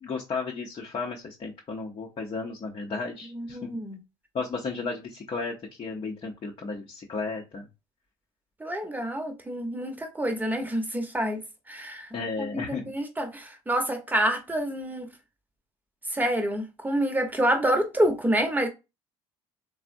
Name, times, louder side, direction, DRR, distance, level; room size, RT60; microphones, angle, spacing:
voice 1, 0.0-3.6 4.3-7.7 12.1-12.8, left 4 dB, 40° left, 0.7 m, -34 dB
voice 2, 3.3-4.0 8.6-11.4 11.7-12.1 12.4-15.1 16.1-18.7, right 1 dB, 10° right, 0.9 m, -27 dB
3.4 x 2.0 x 2.6 m
hypercardioid pair, 65°, 14 cm